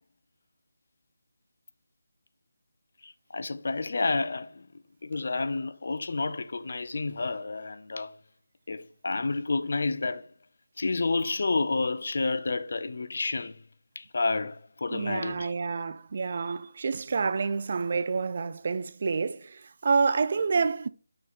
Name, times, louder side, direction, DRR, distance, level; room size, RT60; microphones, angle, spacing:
voice 1, 3.0-4.7 5.0-8.1 8.7-10.3 10.8-13.6 14.0-15.5, left 3 dB, 60° left, 0.6 m, -30 dB
voice 2, 14.9-20.9, right 5 dB, 45° right, 0.4 m, -28 dB
6.0 x 4.9 x 3.7 m
figure-of-eight pair, 165°, 0 cm